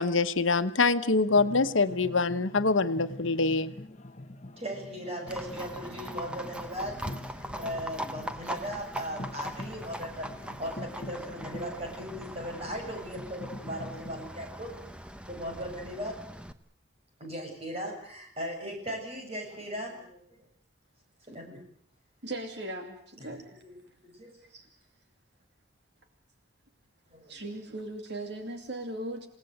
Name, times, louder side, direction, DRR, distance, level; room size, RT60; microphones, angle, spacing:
voice 1, 0.0-3.7, left 3 dB, 80° left, 10 dB, 1.2 m, -25 dB
sound 1, 1.3-14.2, left 1 dB, 35° left, 1.2 m, -45 dB
voice 2, 4.6-10.3 10.6-14.7 15.3-16.2 17.2-20.2 21.3-21.6 23.3-23.7 24.0-24.3 27.1-27.4, equal, 30° right, 2 dB, 7.3 m, -38 dB
Livestock farm animals working animals, 5.3-16.5, equal, 5° right, 0.9 m, -41 dB
voice 3, 22.2-23.6 24.5-24.7 27.3-29.3, right 1 dB, 55° right, 6 dB, 2.6 m, -38 dB
28.5 x 18.0 x 8.0 m, 0.65 s
head